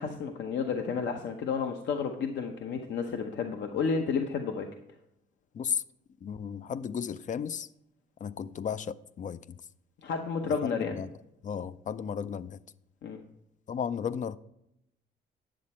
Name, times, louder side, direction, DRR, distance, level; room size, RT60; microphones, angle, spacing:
voice 1, 0.0-4.7 10.0-11.0 13.0-13.2, left 5 dB, 65° left, 0.9 m, -31 dB
voice 2, 6.2-7.7 8.2-9.4 11.0-11.1 11.4-12.6 13.7-14.4, left 7 dB, 40° left, 0.5 m, -34 dB
10.0 x 7.4 x 4.3 m
cardioid pair, 90°, 20 cm